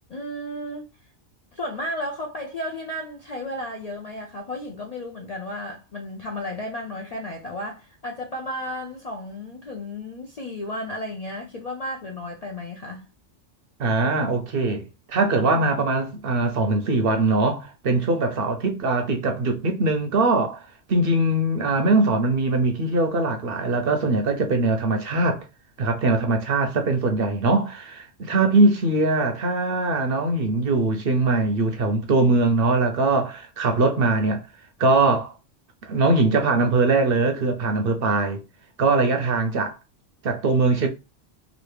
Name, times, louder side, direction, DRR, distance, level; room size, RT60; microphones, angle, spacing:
voice 1, 0.1-0.9 1.5-13.1, left 1 dB, 55° left, 0.4 m, -33 dB
voice 2, 13.8-25.4 25.8-34.4 34.8-35.3 35.8-38.4 38.8-39.8 40.2-40.9, right 2 dB, 60° right, 0.7 m, -21 dB
3.0 x 2.4 x 3.1 m
omnidirectional pair, 1.2 m